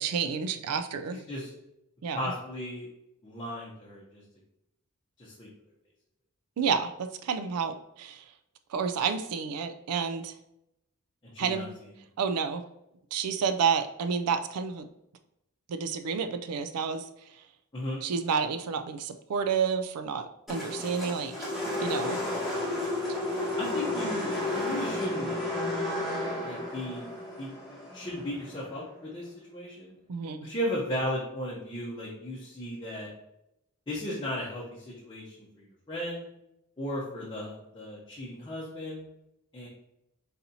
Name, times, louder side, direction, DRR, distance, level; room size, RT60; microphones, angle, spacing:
voice 1, 0.0-1.2 2.0-2.3 6.6-8.2 8.7-10.3 11.4-11.7 12.2-12.6 13.1-14.9 15.7-17.0 18.0-21.5 21.8-22.2 30.1-30.4, right 6 dB, 85° right, 9 dB, 0.4 m, -30 dB
voice 2, 1.1-1.5 2.1-2.9 3.2-4.2 5.2-5.5 11.2-11.7 17.7-18.0 23.6-25.6 26.4-27.1 27.4-29.9 30.4-33.1 33.9-36.3 36.8-39.0 39.5-39.7, equal, 20° left, -6 dB, 0.8 m, -36 dB
sound 1, 20.5-28.7, left 2 dB, ahead, 1.4 m, -32 dB
4.1 x 4.1 x 2.7 m, 0.84 s
head